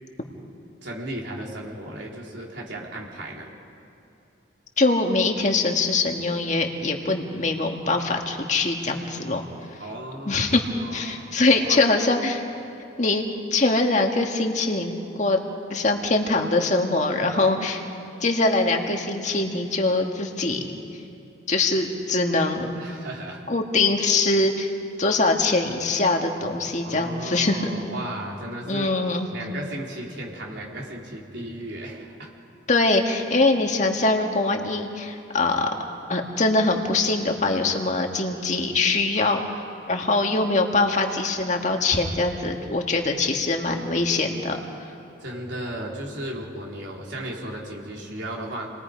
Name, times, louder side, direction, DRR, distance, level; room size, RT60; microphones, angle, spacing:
voice 1, 0.8-3.5 9.8-11.8 17.3-17.6 22.7-23.4 26.8-28.9 29.3-32.3 39.2-39.4 45.2-48.7, right 1 dB, 70° right, -2 dB, 3.9 m, -35 dB
voice 2, 4.8-9.4 10.3-10.6 10.9-12.4 13.0-13.3 13.5-15.4 15.7-17.8 18.2-20.6 21.5-22.7 23.5-24.7 25.0-27.6 28.7-29.3 32.7-35.7 36.1-39.4 39.9-44.6, left 3 dB, 40° left, 3 dB, 1.8 m, -23 dB
29.5 x 20.5 x 5.2 m, 2.9 s
head